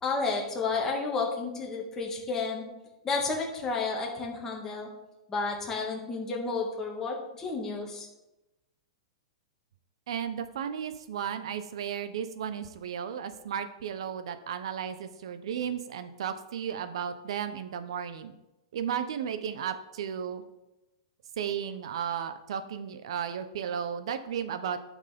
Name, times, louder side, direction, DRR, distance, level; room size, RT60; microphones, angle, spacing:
voice 1, 0.0-2.7 3.0-4.9 5.3-8.1, left 4 dB, 15° left, -1 dB, 2.1 m, -31 dB
voice 2, 10.1-18.3 18.7-20.4 21.4-24.8, right 8 dB, 70° right, 10 dB, 0.9 m, -34 dB
11.5 x 6.3 x 3.6 m, 0.96 s
hypercardioid pair, 140°, 3 cm